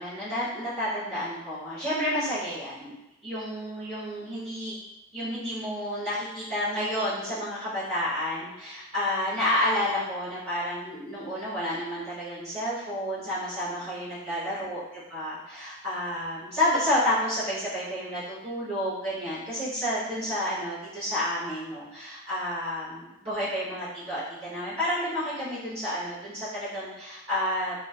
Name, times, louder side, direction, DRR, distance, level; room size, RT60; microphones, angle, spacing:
voice 1, 0.0-2.9 3.2-4.8 5.1-14.8 15.1-27.7, left 1 dB, 30° right, -12 dB, 1.0 m, -30 dB
2.4 x 2.3 x 2.4 m, 0.93 s
head